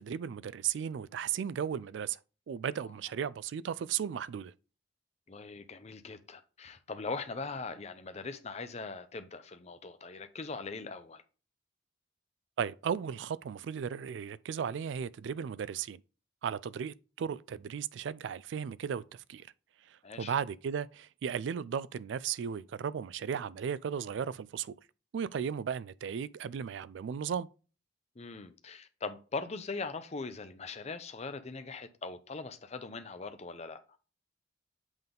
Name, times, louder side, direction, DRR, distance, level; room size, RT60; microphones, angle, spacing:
voice 1, 0.0-2.2 2.5-4.5 12.6-16.0 16.4-19.5 19.9-24.8 25.1-27.5, right 7 dB, 70° right, 0.3 m, -35 dB
voice 2, 5.3-11.2 20.0-20.3 28.2-33.8, left 4 dB, 35° left, 0.6 m, -41 dB
8.0 x 3.5 x 3.7 m
head